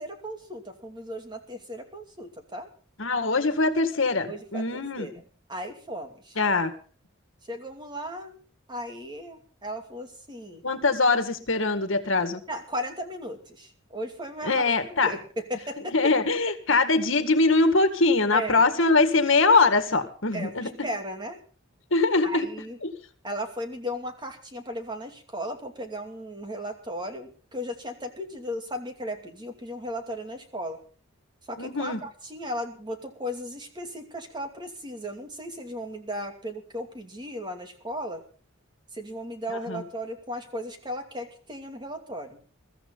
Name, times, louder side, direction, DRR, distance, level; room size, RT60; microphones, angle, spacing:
voice 1, 0.0-2.7 4.2-5.1 5.5-6.4 7.5-8.4 8.7-10.6 12.5-14.6 15.0-15.9 18.3-18.6 20.3-21.4 22.2-22.8 23.2-30.8 31.5-38.2 38.9-42.4, equal, 20° right, 5 dB, 2.6 m, -36 dB
voice 2, 3.0-5.1 6.4-6.7 10.6-12.4 14.4-15.1 15.9-20.9 21.9-22.5 22.8-22.9 31.6-32.0 39.5-39.8, left 3 dB, 65° left, 9 dB, 2.0 m, -23 dB
22.5 x 14.0 x 4.0 m, 0.40 s
head